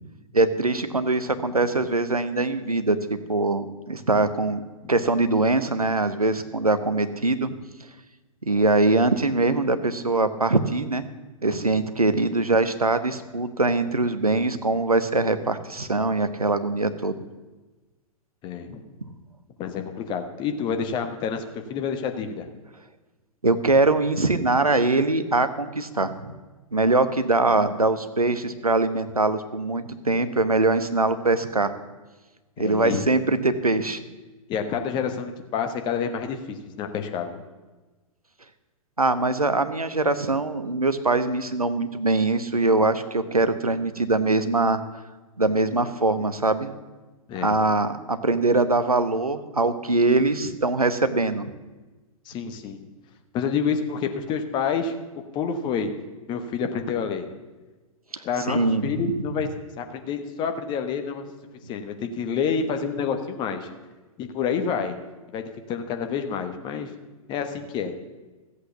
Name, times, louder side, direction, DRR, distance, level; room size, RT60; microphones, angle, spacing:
voice 1, 0.3-4.6 4.9-7.5 8.5-11.0 11.4-17.2 23.4-26.3 26.7-31.7 32.6-34.0 39.0-44.8 45.4-46.7 47.4-51.5 58.1-58.9, right 2 dB, 85° right, 11 dB, 1.0 m, -22 dB
voice 2, 18.4-18.8 19.6-22.5 32.6-33.0 34.5-37.4 47.3-47.6 52.2-52.8 53.3-55.1 55.3-55.9 56.3-57.3 58.2-59.5 59.8-61.3 61.7-63.7 64.2-65.0 65.3-65.4 65.7-66.9 67.3-67.9, left 6 dB, 25° left, 7 dB, 1.2 m, -28 dB
14.0 x 8.2 x 7.1 m, 1.2 s
figure-of-eight pair, 110°, 18 cm